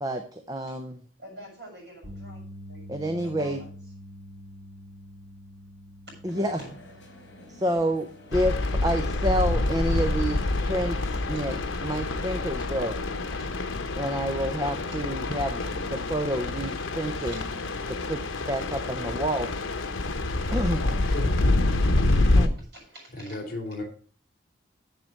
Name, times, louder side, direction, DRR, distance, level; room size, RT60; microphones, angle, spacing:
voice 1, 0.0-1.0 2.9-3.6 6.2-6.6 7.5-8.6 8.8-11.0 11.3-11.5 11.8-12.9 14.0-15.6 15.9-17.3 17.9-18.2 18.5-19.5 20.5-20.8 22.3-22.5, equal, 20° right, 0.7 m, -28 dB
voice 2, 1.2-2.4 2.7-3.7 6.5-6.7 10.6-10.8 12.6-12.7 13.4-13.5 17.2-17.5 19.9-20.0 22.1-22.2 22.6-23.4, right 1 dB, 55° right, 6.7 m, -47 dB
sound 1, 2.0-14.3 14.6-14.9 17.1-17.2, equal, 80° right, 3.3 m, -48 dB
sound 2, 6.2-16.0, equal, 65° left, 4.0 m, -48 dB
sound 3, 8.3-22.5, left 2 dB, 85° left, 1.0 m, -27 dB
voice 3, 20.8-21.3 23.1-23.8, left 2 dB, 45° left, 2.9 m, -34 dB
7.9 x 7.4 x 6.4 m
head